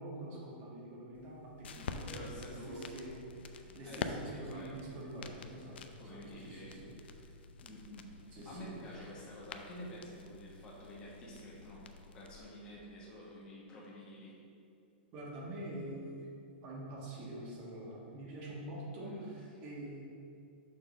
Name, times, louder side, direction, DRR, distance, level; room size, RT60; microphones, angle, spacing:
voice 1, 0.0-6.9 8.3-9.1 15.1-16.3 16.6-20.0, right 1 dB, 25° right, -4 dB, 1.4 m, -46 dB
sound 1, 1.1-12.4, left 5 dB, 65° left, 0.5 m, -47 dB
voice 2, 2.1-2.9 3.8-4.8 6.0-7.2 7.6-8.1 8.4-14.3 19.0-19.2, equal, 15° left, -5 dB, 1.3 m, -49 dB
6.6 x 3.8 x 6.2 m, 2.5 s
supercardioid pair, 175°, 6 cm